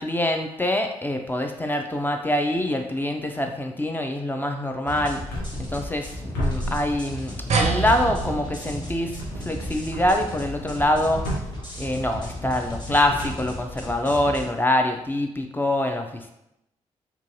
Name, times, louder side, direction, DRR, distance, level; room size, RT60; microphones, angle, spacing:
voice 1, 0.0-5.2 5.6-11.2 11.8-16.3, left 1 dB, 15° left, 4 dB, 0.4 m, -25 dB
sound 1, 4.9-14.4, left 1 dB, 35° left, 1.1 m, -36 dB
sound 2, 5.3-6.1 6.3-7.4 7.8-8.6 9.1-14.2, equal, 85° left, 0.6 m, -34 dB
sound 3, 7.5-12.4, right 4 dB, 50° right, 0.4 m, -30 dB
2.5 x 2.2 x 2.8 m, 0.84 s
hypercardioid pair, 45°, 14 cm